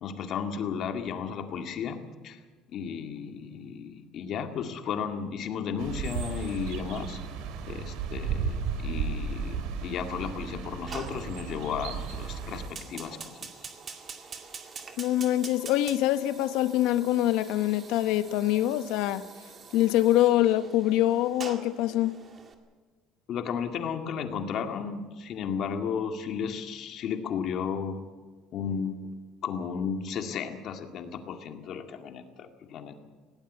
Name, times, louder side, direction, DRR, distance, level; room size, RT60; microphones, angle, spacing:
voice 1, 0.0-2.4 2.7-7.2 7.7-13.4 23.3-28.0 28.5-29.1 29.4-33.0, left 7 dB, 45° left, 2.1 m, -34 dB
sound 1, 5.8-12.7, right 6 dB, 70° right, 3.1 m, -34 dB
Fire, 10.9-22.5, right 5 dB, 30° right, 2.2 m, -45 dB
voice 2, 15.0-19.3 19.7-22.2, left 14 dB, 75° left, 1.0 m, -24 dB
20.0 x 17.5 x 8.3 m
cardioid pair, 155°, 0 cm